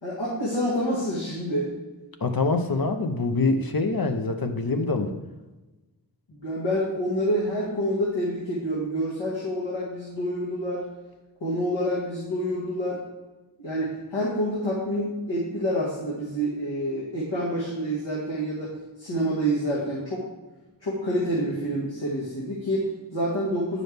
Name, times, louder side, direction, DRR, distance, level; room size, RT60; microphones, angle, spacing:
voice 1, 0.0-1.7 6.3-10.9 11.4-13.0 13.6-20.2 20.8-23.8, equal, 75° left, -8 dB, 2.0 m, -27 dB
voice 2, 2.2-5.1, left 3 dB, 55° left, 6 dB, 0.8 m, -25 dB
9.2 x 6.2 x 3.4 m, 1.1 s
wide cardioid pair, 55°, 44 cm